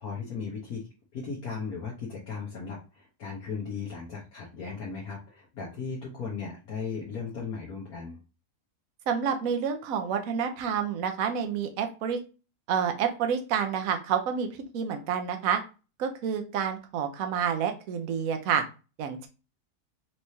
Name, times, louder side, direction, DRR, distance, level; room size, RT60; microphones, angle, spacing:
voice 1, 0.0-8.2, left 5 dB, 75° left, -4 dB, 1.5 m, -37 dB
voice 2, 9.1-12.2 12.7-14.5 14.7-15.6 16.0-18.6 19.0-19.3, right 7 dB, 70° right, 6 dB, 1.1 m, -28 dB
4.6 x 3.2 x 2.7 m, 0.32 s
omnidirectional pair, 1.6 m